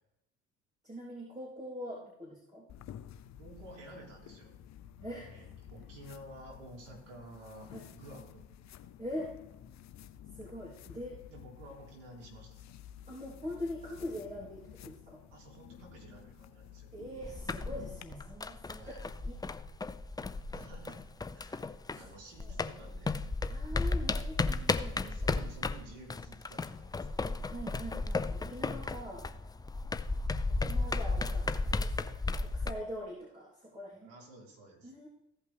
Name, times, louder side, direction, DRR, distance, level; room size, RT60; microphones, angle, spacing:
voice 1, 0.8-2.7 5.0-5.5 7.7-7.9 9.0-9.4 10.4-11.2 13.1-15.2 16.9-18.8 19.3-19.4 22.4-22.5 23.5-25.0 27.4-29.3 30.6-34.1 34.8-35.1, equal, 20° right, -5 dB, 3.4 m, -43 dB
sound 1, 2.7-18.0, left 10 dB, 50° left, 0.7 m, -52 dB
voice 2, 3.4-4.6 5.2-8.5 11.3-12.7 15.3-16.9 18.7-19.0 20.5-23.2 25.0-27.2 34.0-34.9, right 1 dB, 85° right, -2 dB, 3.0 m, -52 dB
sound 2, 17.2-22.1 22.4-32.7, left 3 dB, 10° left, 0.4 m, -34 dB
15.5 x 5.5 x 3.4 m, 0.84 s
hypercardioid pair, 65°, 36 cm